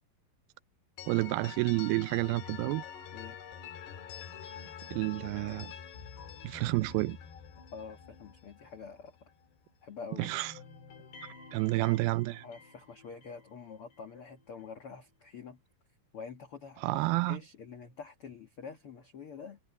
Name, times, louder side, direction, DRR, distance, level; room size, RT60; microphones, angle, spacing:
sound 1, 1.0-9.7 10.0-14.1, left 7 dB, 80° left, 5.2 m, -47 dB
voice 1, 1.1-2.8 4.9-5.7 6.4-7.2 10.2-10.5 11.5-12.4 16.8-17.4, right 21 dB, 80° right, 2.2 m, -30 dB
voice 2, 7.7-9.3 9.8-10.3 12.4-15.6 16.1-19.6, left 5 dB, 50° left, 1.8 m, -46 dB
omnidirectional pair, 4.6 m